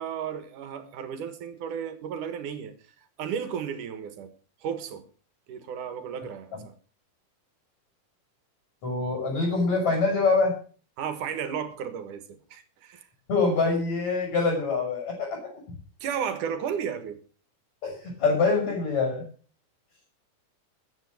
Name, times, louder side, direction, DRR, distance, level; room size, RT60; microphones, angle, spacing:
voice 1, 0.0-2.7 3.2-4.3 4.6-5.1 5.5-6.7 11.0-13.1 16.0-17.2, right 7 dB, 80° right, 3.0 m, -34 dB
voice 2, 8.8-10.5 13.3-15.5 17.8-17.9 18.2-19.2, left 3 dB, 60° left, 7.2 m, -24 dB
14.0 x 9.0 x 6.4 m
omnidirectional pair, 3.6 m